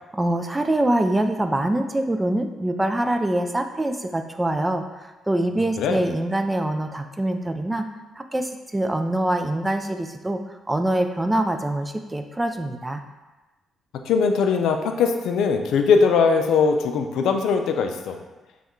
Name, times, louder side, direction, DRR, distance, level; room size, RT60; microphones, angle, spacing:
voice 1, 0.1-4.8 5.3-7.9 8.2-10.4 10.7-13.0, right 1 dB, 15° right, 6 dB, 0.3 m, -24 dB
voice 2, 14.1-18.2, left 5 dB, 80° left, 5 dB, 0.4 m, -20 dB
5.5 x 2.3 x 3.1 m, 1.1 s
cardioid pair, 90°, 0 cm